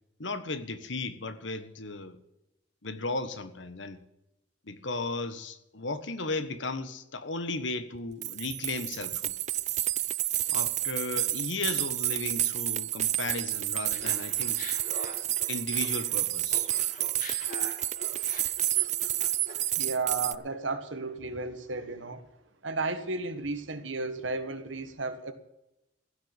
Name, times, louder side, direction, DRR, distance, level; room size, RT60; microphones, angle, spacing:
voice 1, 0.2-2.2 2.8-4.0 4.7-9.3 10.5-14.6 15.5-16.7, left 3 dB, 75° left, 1.4 m, -35 dB
sound 1, 8.0-8.1 8.2-20.4, right 14 dB, 40° right, 0.4 m, -30 dB
Laughter, 13.9-16.2 16.5-19.7, left 2 dB, 45° left, 2.5 m, -44 dB
voice 2, 19.8-22.2 22.6-25.3, right 3 dB, 90° right, 1.5 m, -33 dB
15.5 x 6.6 x 9.1 m
head